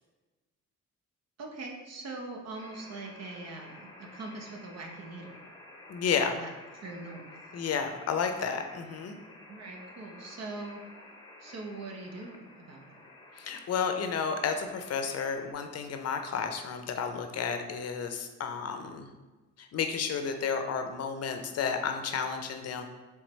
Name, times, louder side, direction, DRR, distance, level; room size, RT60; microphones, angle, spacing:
voice 1, 1.4-5.4 6.3-7.6 9.5-10.8 11.4-13.0, right 3 dB, 60° right, 1 dB, 0.9 m, -42 dB
sound 1, 2.5-15.5, left 2 dB, 15° left, 0.8 m, -51 dB
voice 2, 5.9-6.4 7.5-9.2 13.4-19.1 19.6-22.8, left 6 dB, 55° left, 6 dB, 0.6 m, -32 dB
4.6 x 3.4 x 3.1 m, 1.2 s
cardioid pair, 90°, 30 cm